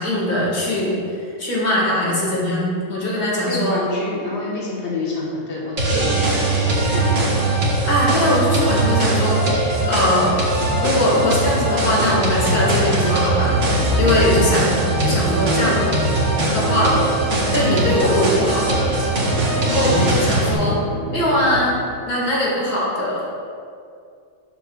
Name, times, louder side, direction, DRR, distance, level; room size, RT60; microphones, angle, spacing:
voice 1, 0.0-3.9 7.9-9.4 9.8-10.4 10.8-14.8 15.0-15.9 16.5-17.0 17.5-18.9 19.6-20.8 21.1-21.8 22.1-23.3, left 1 dB, 80° left, -5 dB, 2.7 m, -21 dB
voice 2, 3.4-7.5 14.3-14.6 19.9-20.2, left 2 dB, 45° left, -6 dB, 1.8 m, -27 dB
sound 1, 5.8-20.5, right 2 dB, 50° right, 1.9 m, -20 dB
Musical instrument, 13.4-22.0, right 2 dB, 70° right, 1.6 m, -27 dB
12.0 x 7.9 x 2.5 m, 2.3 s
omnidirectional pair, 1.6 m